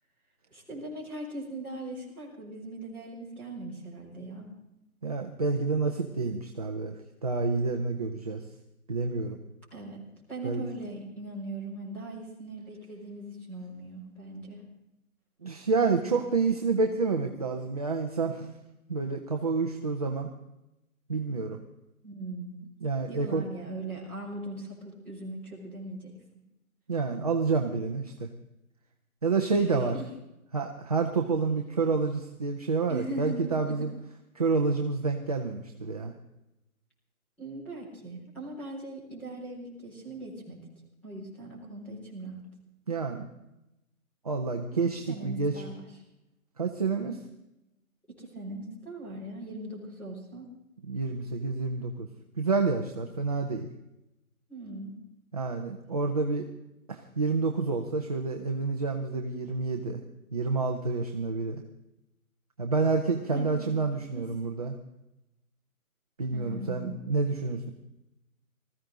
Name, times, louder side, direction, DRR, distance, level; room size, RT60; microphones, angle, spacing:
voice 1, 0.5-4.5 9.7-10.0 10.3-14.6 22.0-22.6 23.1-26.1 29.5-29.7 29.9-30.0 32.9-33.9 37.4-40.6 41.0-42.4 45.1-45.8 48.2-50.5 54.5-54.9 63.3-63.7 64.1-64.2 66.3-66.9, right 2 dB, 5° left, -8 dB, 4.1 m, -40 dB
voice 2, 5.0-8.4 8.9-9.4 10.4-10.6 15.4-18.5 18.9-20.3 21.1-21.6 22.8-23.4 26.9-28.3 29.2-30.0 30.5-33.9 34.3-36.1 42.9-43.3 44.2-45.6 46.6-47.2 50.9-52.1 52.4-53.7 55.3-56.5 56.9-60.0 60.3-61.6 62.6-64.8 66.2-67.7, right 4 dB, 25° right, 3 dB, 0.8 m, -28 dB
19.5 x 14.5 x 3.8 m, 0.90 s
hypercardioid pair, 165°, 43 cm